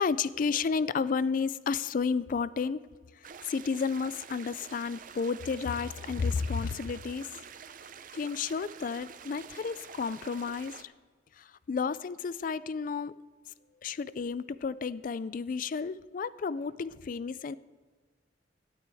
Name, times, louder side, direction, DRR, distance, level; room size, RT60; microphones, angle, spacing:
voice 1, 0.0-2.8 3.1-7.3 8.1-10.9 11.4-13.1 13.8-17.5, left 5 dB, 45° left, 18 dB, 0.3 m, -32 dB
sound 1, 3.2-10.8, right 7 dB, 45° right, 0.5 m, -48 dB
13.5 x 12.0 x 3.5 m, 1.4 s
head